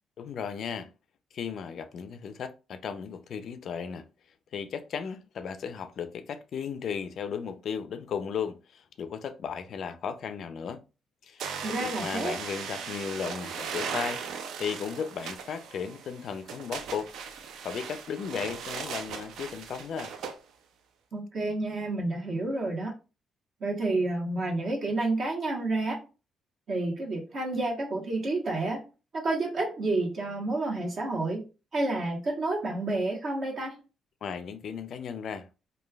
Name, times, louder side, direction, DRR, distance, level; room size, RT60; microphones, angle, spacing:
voice 1, 0.2-0.9 1.3-4.1 4.5-10.8 11.2-17.1 17.6-20.1 34.2-35.6, left 7 dB, 65° left, 0.3 m, -35 dB
sound 1, 11.4-20.4, right 6 dB, 80° right, 0.4 m, -38 dB
voice 2, 11.6-12.4 21.1-22.9 23.6-26.0 26.7-28.8 29.1-31.4 31.7-33.8, right 2 dB, 55° right, 1.0 m, -29 dB
3.1 x 2.2 x 2.2 m
cardioid pair, 90°, 0 cm